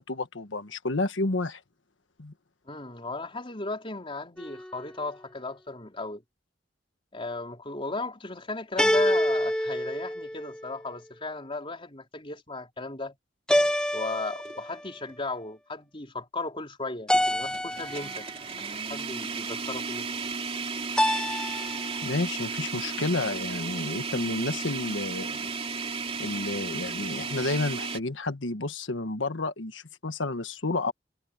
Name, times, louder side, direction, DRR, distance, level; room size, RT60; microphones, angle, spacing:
voice 1, 0.0-1.6 2.2-2.3 22.0-25.5 26.2-30.9, left 2 dB, 85° left, 1.4 m, -30 dB
voice 2, 2.7-6.2 7.1-13.2 13.9-18.3 18.7-20.1, left 3 dB, 30° left, 4.4 m, -36 dB
sound 1, 4.4-5.0 8.8-10.8 13.5-14.9 17.1-18.3 21.0-22.0, equal, 5° left, 0.7 m, -27 dB
sound 2, 14.4-14.6 15.1-15.2 17.1-28.0, right 5 dB, 30° right, 3.3 m, -34 dB
head